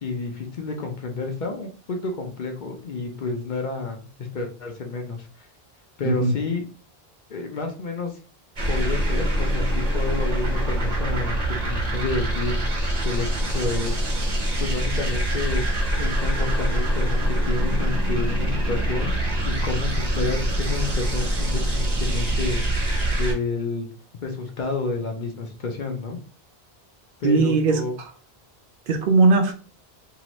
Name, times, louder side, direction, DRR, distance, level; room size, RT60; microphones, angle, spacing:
voice 1, 0.0-5.5 6.0-6.6 7.3-8.2 8.7-12.6 13.0-14.0 14.6-19.1 19.5-22.6 23.2-23.9 24.2-26.2 27.2-27.9, left 3 dB, 55° left, 3 dB, 0.7 m, -30 dB
sound 1, 8.6-23.3, right 1 dB, 45° right, 1.0 m, -24 dB
voice 2, 27.2-28.1 28.9-29.5, right 3 dB, 65° right, 5 dB, 0.7 m, -19 dB
2.8 x 2.5 x 3.0 m, 0.38 s
omnidirectional pair, 1.1 m